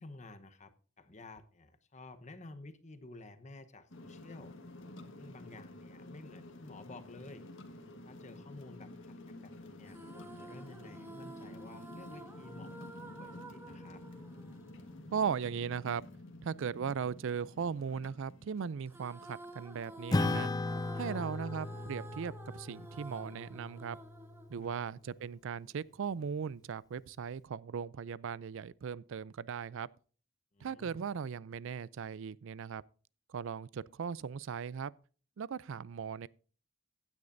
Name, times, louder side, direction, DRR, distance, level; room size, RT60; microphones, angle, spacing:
voice 1, 0.0-4.5 5.2-7.4 8.0-12.7 13.0-14.0 21.0-21.4 24.6-24.8 30.5-31.0, left 2 dB, 35° left, 1.0 m, -52 dB
sound 1, 3.9-21.9, left 2 dB, 60° left, 1.6 m, -51 dB
sound 2, 9.8-15.4 18.9-25.3, right 2 dB, 10° right, 1.2 m, -51 dB
voice 2, 15.1-16.0 16.4-20.5 20.9-24.0 24.5-29.9 30.6-32.8 33.3-34.9 35.4-36.3, right 6 dB, 60° right, 0.4 m, -38 dB
Acoustic guitar / Strum, 20.1-24.9, left 2 dB, 20° left, 0.4 m, -36 dB
15.5 x 9.7 x 2.6 m
head